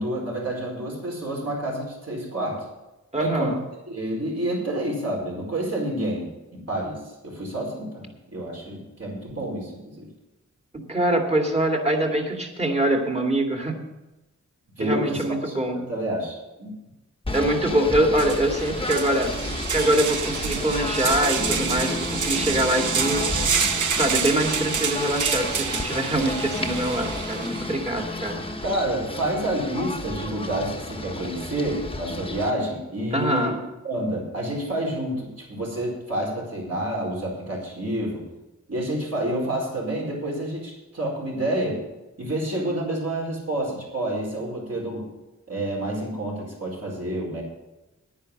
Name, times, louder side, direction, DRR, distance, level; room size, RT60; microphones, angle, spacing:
voice 1, 0.0-2.7 3.2-3.6 3.9-10.1 14.8-16.7 28.6-33.6 33.8-38.2 38.7-41.8 42.2-45.1 45.5-47.4, right 1 dB, 55° right, -2 dB, 4.7 m, -29 dB
voice 2, 3.1-3.6 10.7-13.8 14.8-15.9 17.3-23.3 24.0-28.4 33.1-33.6, right 1 dB, 20° right, 2 dB, 2.2 m, -24 dB
Singing / Bird, 17.2-32.5, left 2 dB, 20° left, 1.2 m, -31 dB
sound 1, 17.7-17.8 18.1-27.7, right 6 dB, 80° right, 0.8 m, -28 dB
10.5 x 10.0 x 6.6 m, 1.0 s
wide cardioid pair, 85°, 30 cm